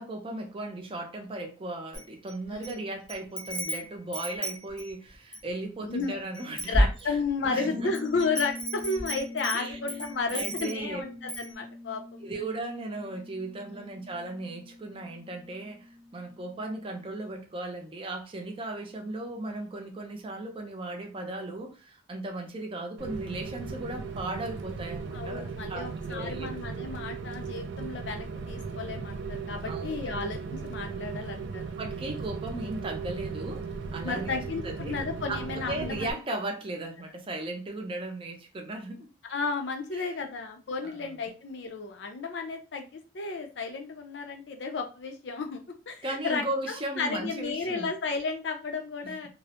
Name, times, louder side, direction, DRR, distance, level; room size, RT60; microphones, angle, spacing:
voice 1, 0.0-7.9 9.5-11.0 12.2-25.4 25.7-26.5 29.6-30.1 31.8-34.9 35.3-39.1 39.9-40.1 40.8-41.2 46.0-47.9 49.0-49.3, right 2 dB, 30° right, 3 dB, 0.5 m, -37 dB
Wind chime, 1.9-2.7 3.1-5.5 6.0-6.1 6.3-7.4 7.9-10.9 11.3-11.5, equal, 5° left, 0.7 m, -31 dB
voice 2, 2.5-2.8 5.8-6.2 6.7-12.3 13.7-13.9 25.1-31.6 34.0-36.1 39.3-45.6 45.9-49.3, left 4 dB, 85° left, 5 dB, 0.5 m, -33 dB
Bass guitar, 7.4-17.1, left 2 dB, 40° left, 0.6 m, -44 dB
Rain, 23.0-36.1, right 5 dB, 85° right, 0.3 m, -37 dB
2.2 x 2.0 x 2.8 m, 0.32 s
head